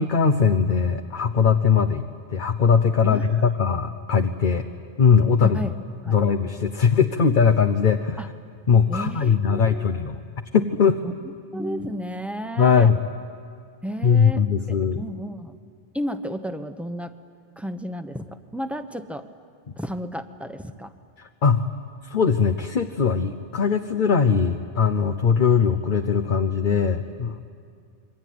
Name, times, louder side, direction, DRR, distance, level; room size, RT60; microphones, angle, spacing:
voice 1, 0.0-4.6 5.0-5.6 6.1-8.2 8.7-10.2 10.5-11.0 12.6-13.0 14.0-15.0 21.4-21.7 22.0-27.4, left 6 dB, 55° left, 7 dB, 1.0 m, -20 dB
voice 2, 3.0-3.4 5.4-5.7 6.0-6.2 8.2-8.3 8.9-10.1 11.0-11.1 11.5-12.9 13.8-15.6 15.9-17.1 17.6-19.3 19.8-20.9, equal, ahead, 8 dB, 1.0 m, -33 dB
27.0 x 23.5 x 9.4 m, 2.3 s
omnidirectional pair, 1.0 m